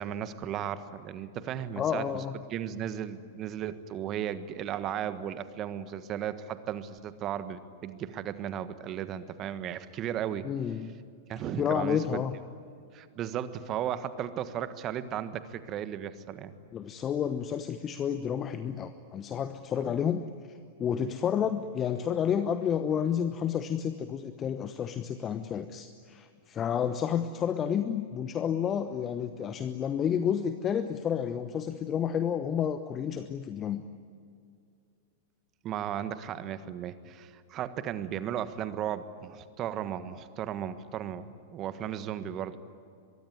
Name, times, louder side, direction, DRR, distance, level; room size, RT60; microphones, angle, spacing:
voice 1, 0.0-2.2 2.5-10.5 11.3-12.2 12.9-16.5 19.7-19.8 35.6-42.6, right 10 dB, 30° right, 13 dB, 1.4 m, -35 dB
voice 2, 1.8-2.4 10.4-11.0 11.6-12.4 16.7-33.8, left 8 dB, 25° left, 11 dB, 1.0 m, -30 dB
23.5 x 23.0 x 9.8 m, 2.4 s
figure-of-eight pair, 95°, 0 cm